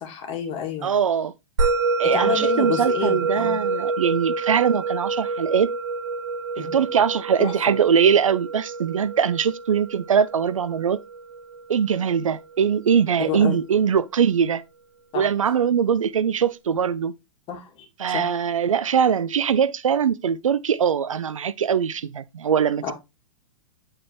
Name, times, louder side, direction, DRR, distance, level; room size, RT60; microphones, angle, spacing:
voice 1, 0.0-0.9 2.0-3.6 6.6-6.8 7.4-7.5 13.2-13.6 15.1-15.3 17.5-18.4 22.8-22.9, left 8 dB, 35° left, 2.1 m, -30 dB
voice 2, 0.8-1.3 2.0-5.7 6.6-11.0 11.7-14.6 15.1-17.1 18.0-22.9, right 7 dB, 80° right, 0.4 m, -22 dB
Musical instrument, 1.6-12.2, right 3 dB, 60° right, 3.5 m, -27 dB
8.6 x 4.4 x 3.2 m
hypercardioid pair, 110°, 17 cm